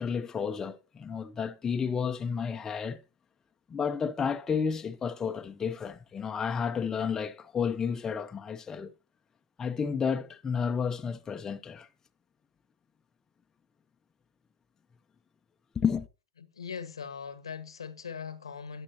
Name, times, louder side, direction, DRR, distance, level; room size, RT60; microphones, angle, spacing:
voice 1, 0.0-3.0 3.7-8.9 9.6-11.9 15.7-16.1, left 6 dB, 20° left, 0.8 m, -31 dB
voice 2, 16.4-18.8, left 6 dB, 85° left, 1.2 m, -40 dB
13.0 x 9.9 x 2.9 m
hypercardioid pair, 100°, 3 cm